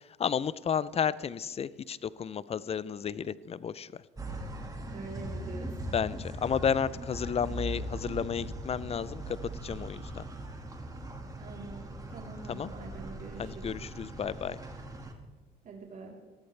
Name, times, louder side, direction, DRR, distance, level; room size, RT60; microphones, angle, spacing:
voice 1, 0.2-3.9 5.9-10.2 12.5-12.7 13.4-14.6, left 7 dB, 35° left, 19 dB, 0.5 m, -32 dB
sound 1, 4.2-15.1, right 1 dB, 20° right, 2.0 m, -40 dB
voice 2, 4.9-5.9 11.4-13.7 15.6-16.1, right 3 dB, 50° right, -2 dB, 3.6 m, -45 dB
19.5 x 13.5 x 3.4 m, 1.3 s
supercardioid pair, 85°, 18 cm